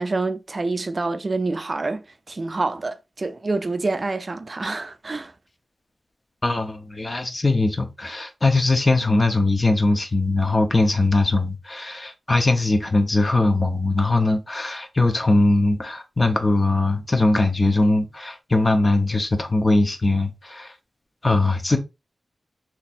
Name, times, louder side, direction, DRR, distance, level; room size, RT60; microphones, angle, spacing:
voice 1, 0.0-5.3, right 3 dB, 45° right, 0.4 m, -27 dB
voice 2, 6.4-20.7 21.2-21.8, left 2 dB, 35° left, 0.7 m, -21 dB
3.9 x 2.9 x 2.5 m
wide cardioid pair, 75°, 0 cm